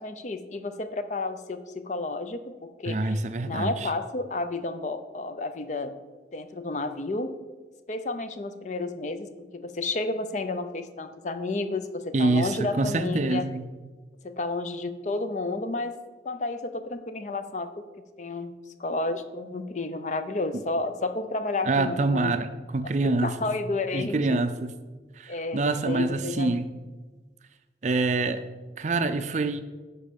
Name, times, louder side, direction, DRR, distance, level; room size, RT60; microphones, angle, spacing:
voice 1, 0.0-5.9 6.3-7.3 7.9-9.3 9.5-13.5 14.2-16.0 16.2-17.7 18.2-18.5 18.8-22.4 23.0-24.4 25.3-26.6, left 2 dB, 40° left, 9 dB, 0.5 m, -31 dB
voice 2, 2.9-3.9 12.1-13.6 21.6-22.5 22.7-23.3 23.9-24.7 25.2-26.7 27.8-28.4 28.8-29.6, right 3 dB, 40° right, 11 dB, 0.4 m, -26 dB
10.5 x 4.4 x 5.2 m, 1.3 s
head